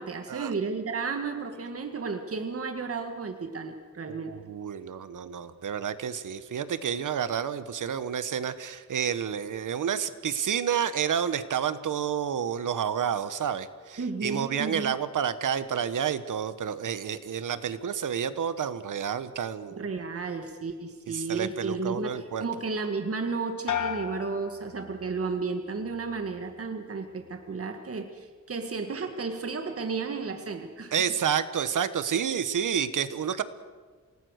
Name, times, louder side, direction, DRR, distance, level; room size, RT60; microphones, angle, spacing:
voice 1, 0.0-4.4 14.0-15.0 19.7-30.9, right 4 dB, 50° right, 6 dB, 1.8 m, -33 dB
voice 2, 4.3-19.8 21.1-22.5 30.9-33.4, right 8 dB, 90° right, 13 dB, 1.2 m, -30 dB
sound 1, 23.7-25.4 25.8-26.4, left 8 dB, 75° left, 1.6 m, -35 dB
28.0 x 19.0 x 6.6 m, 1.5 s
wide cardioid pair, 110°, 30 cm